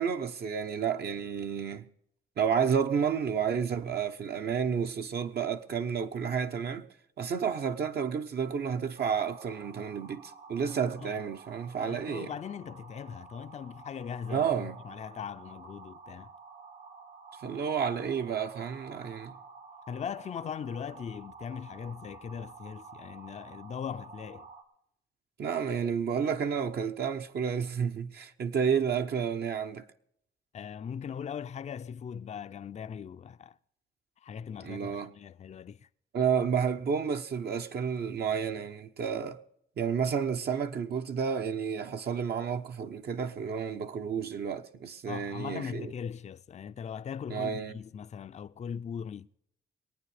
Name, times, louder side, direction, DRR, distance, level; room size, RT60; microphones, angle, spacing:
voice 1, 0.0-1.9 2.4-6.9 7.2-12.3 14.3-14.8 17.4-19.4 25.4-29.8 34.6-35.1 36.1-39.4 39.8-45.9 47.3-47.7, right 7 dB, 60° right, 0.9 m, -31 dB
dark ambient high pitch tone scifi, 9.0-24.6, right 4 dB, 80° right, 2.5 m, -50 dB
voice 2, 11.8-16.3 19.9-24.5 30.5-33.6 34.2-35.9 45.1-49.3, left 7 dB, 40° left, 0.4 m, -40 dB
21.0 x 9.1 x 4.9 m
cardioid pair, 95°, 18 cm